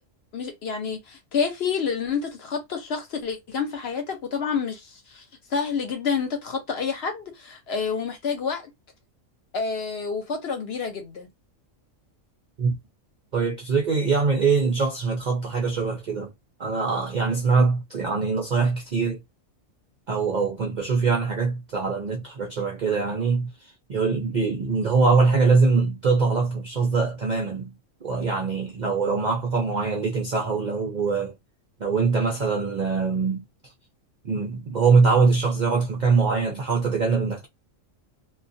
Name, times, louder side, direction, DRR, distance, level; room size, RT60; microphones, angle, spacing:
voice 1, 0.3-5.2 5.5-8.7 9.5-11.3, left 6 dB, 60° left, 0.8 m, -28 dB
voice 2, 13.3-16.3 16.6-19.2 20.1-27.7 28.0-31.4 31.8-33.4 34.2-37.5, right 4 dB, 60° right, 0.4 m, -23 dB
2.3 x 2.2 x 2.5 m
omnidirectional pair, 1.4 m